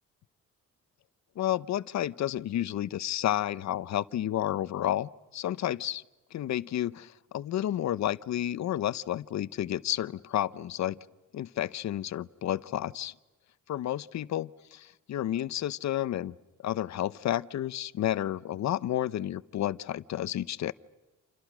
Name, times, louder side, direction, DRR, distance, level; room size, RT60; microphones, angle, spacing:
voice 1, 1.4-6.0 6.3-11.0 11.3-13.1 13.7-16.3 16.6-20.7, left 12 dB, 65° left, 16 dB, 0.9 m, -31 dB
29.0 x 28.5 x 6.2 m, 1.1 s
cardioid pair, 90°, 30 cm